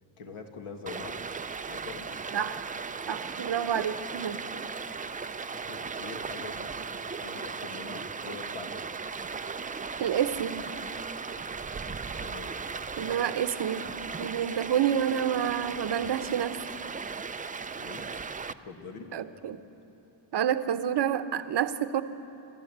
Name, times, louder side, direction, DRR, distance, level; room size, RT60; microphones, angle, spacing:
voice 1, 0.2-1.2 1.7-2.1 3.1-3.2 5.5-8.9 11.9-12.5 13.0-13.2 14.2-14.3 17.7-18.1 18.5-19.1, left 5 dB, 80° left, 3 dB, 2.1 m, -44 dB
Stream, 0.9-18.5, right 5 dB, 20° right, 0.4 m, -37 dB
voice 2, 2.3-2.7 3.1-4.4 10.0-10.7 13.0-13.9 14.2-16.6 19.1-19.6 20.3-22.0, right 9 dB, 55° right, 11 dB, 0.9 m, -28 dB
26.5 x 12.5 x 8.0 m, 3.0 s
cardioid pair, 105°, 49 cm